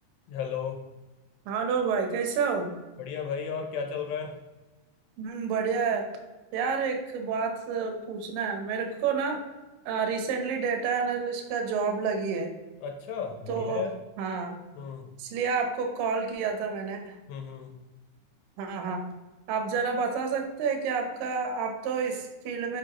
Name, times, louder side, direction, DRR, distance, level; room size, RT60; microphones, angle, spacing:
voice 1, 0.3-0.8 3.0-4.3 12.8-13.9 14.8-15.1 17.3-17.7, left 6 dB, 80° left, 4 dB, 2.8 m, -34 dB
voice 2, 1.5-2.7 5.2-6.1 6.5-9.4 9.9-12.5 13.5-13.9 14.2-14.6 15.2-17.2 18.6-19.0 19.5-22.8, right 5 dB, 75° right, 4 dB, 2.2 m, -29 dB
7.3 x 5.0 x 2.9 m, 1.2 s
omnidirectional pair, 4.9 m